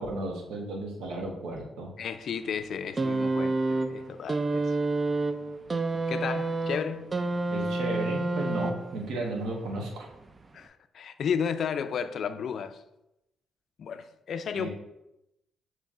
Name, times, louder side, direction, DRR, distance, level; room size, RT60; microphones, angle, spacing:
voice 1, 0.0-1.9 7.5-10.1 14.5-14.7, right 2 dB, 80° right, 1.0 m, -34 dB
voice 2, 2.0-4.8 6.1-7.1 10.5-12.8 13.8-14.7, left 7 dB, 60° left, 0.3 m, -33 dB
sound 1, 3.0-9.1 10.2-10.3, right 2 dB, 30° right, 0.3 m, -29 dB
6.9 x 3.0 x 2.4 m
cardioid pair, 90°, 0 cm